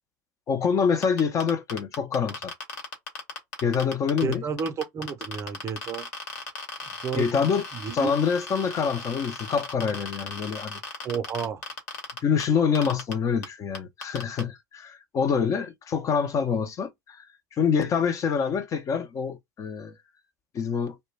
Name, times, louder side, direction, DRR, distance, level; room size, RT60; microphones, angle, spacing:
voice 1, 0.5-2.5 3.6-4.4 7.2-7.6 7.9-10.8 12.2-17.2 17.5-20.0 20.5-21.0, left 6 dB, 35° left, 0.5 m, -26 dB
sound 1, 1.0-4.3 4.6-12.4 12.7-13.1 13.4-13.5 13.7-14.4, left 4 dB, 70° left, 1.1 m, -36 dB
voice 2, 4.2-6.1 7.0-7.3 7.7-8.1 11.0-11.6, right 6 dB, 30° right, 0.6 m, -31 dB
2.2 x 2.1 x 3.1 m
hypercardioid pair, 85°, 10 cm